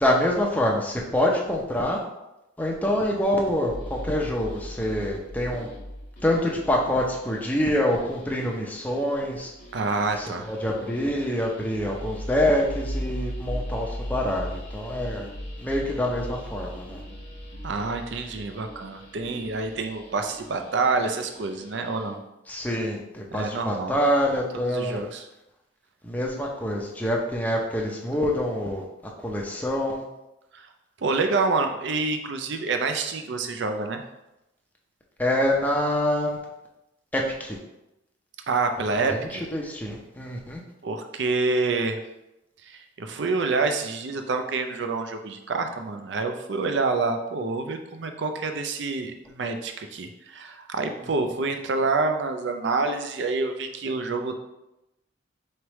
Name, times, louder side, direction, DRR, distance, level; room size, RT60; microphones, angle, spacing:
voice 1, 0.0-2.0 2.6-5.7 6.2-9.5 10.2-15.3 15.6-17.0 22.5-25.0 26.0-28.8 29.2-30.0 35.2-36.4 37.1-37.6 39.0-40.6, left 1 dB, 10° left, -1 dB, 0.6 m, -26 dB
sound 1, 3.7-22.1, equal, 40° left, 1.0 m, -38 dB
voice 2, 9.7-10.5 17.6-22.2 23.3-23.9 24.5-25.3 30.5-30.7 31.0-34.0 38.5-39.4 40.8-42.0 42.7-54.4, right 3 dB, 65° right, 6 dB, 0.5 m, -27 dB
4.5 x 3.3 x 3.0 m, 0.91 s
head